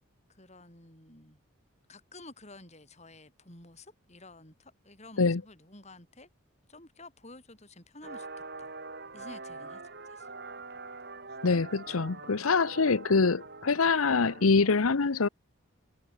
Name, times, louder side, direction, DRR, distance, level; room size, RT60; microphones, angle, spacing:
voice 1, 0.3-1.4 1.9-6.3 6.7-8.3 8.6-8.8 9.1-10.3 12.5-12.6, left 2 dB, 30° left, 6.4 m, -51 dB
sound 1, 8.0-14.8, right 3 dB, 50° right, 7.9 m, -44 dB
voice 2, 11.4-15.3, left 4 dB, 85° left, 0.9 m, -25 dB
head